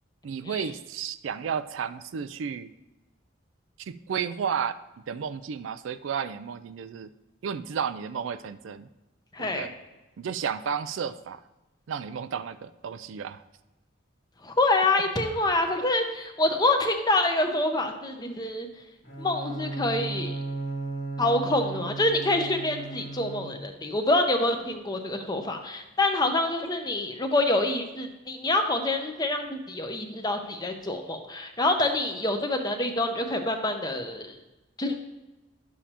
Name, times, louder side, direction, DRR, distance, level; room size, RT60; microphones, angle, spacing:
voice 1, 0.2-2.7 3.8-4.8 5.1-7.1 7.4-8.9 9.4-9.7 10.2-11.4 11.9-13.4, right 7 dB, 75° right, 12 dB, 0.4 m, -32 dB
voice 2, 9.3-9.7 14.4-18.7 19.2-20.3 21.2-34.3 34.8-34.9, left 2 dB, 20° left, 5 dB, 0.7 m, -26 dB
Bowed string instrument, 19.0-23.9, right 3 dB, 80° left, 1.7 m, -35 dB
11.0 x 7.1 x 2.9 m, 1.1 s
head